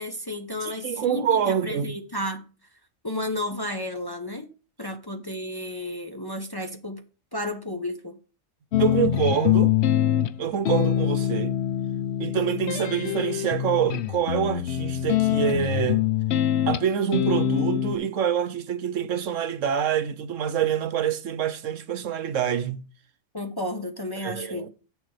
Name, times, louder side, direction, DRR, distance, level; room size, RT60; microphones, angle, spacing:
voice 1, 0.0-2.4 3.0-4.5 4.8-7.0 7.3-8.2 23.3-24.7, left 1 dB, 20° left, 0.8 m, -32 dB
voice 2, 0.6-2.0 8.8-9.8 10.4-11.6 12.2-16.1 16.7-22.8 24.2-24.7, right 8 dB, 75° right, 1.2 m, -26 dB
sound 1, 8.7-18.0, left 11 dB, 65° left, 0.8 m, -24 dB
8.1 x 6.9 x 4.8 m
omnidirectional pair, 1.4 m